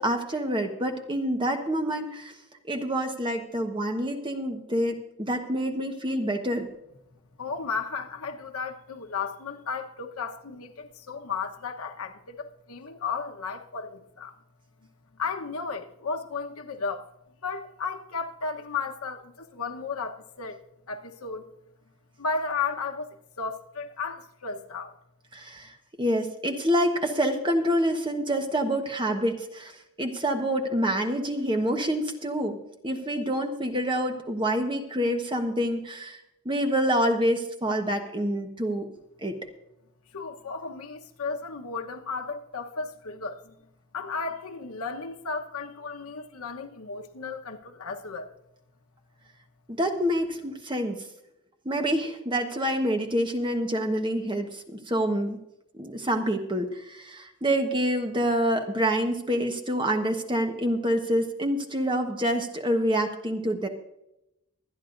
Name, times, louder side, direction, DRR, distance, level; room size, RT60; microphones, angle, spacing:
voice 1, 0.0-2.3 2.7-6.7 25.3-25.7 26.0-32.6 32.8-38.9 39.2-39.4 49.7-51.1 51.6-55.4 55.8-63.7, equal, 20° right, 1.2 m, -27 dB
voice 2, 7.4-14.4 15.1-17.1 17.4-20.6 20.9-21.5 22.2-24.9 40.1-43.5 43.9-48.3, left 4 dB, 85° left, 1.1 m, -34 dB
24.5 x 9.8 x 2.6 m
head